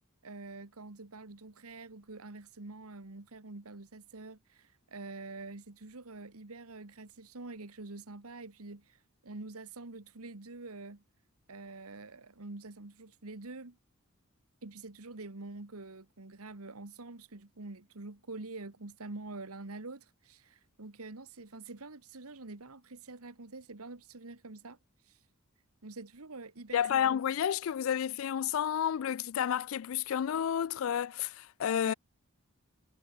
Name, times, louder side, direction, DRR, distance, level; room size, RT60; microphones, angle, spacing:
voice 1, 0.2-11.0 11.5-13.8 14.6-24.8 25.1-25.2 25.8-27.2 31.8-31.9, right 3 dB, 80° right, 1.6 m, -46 dB
voice 2, 26.7-31.9, left 9 dB, 65° left, 0.3 m, -30 dB
head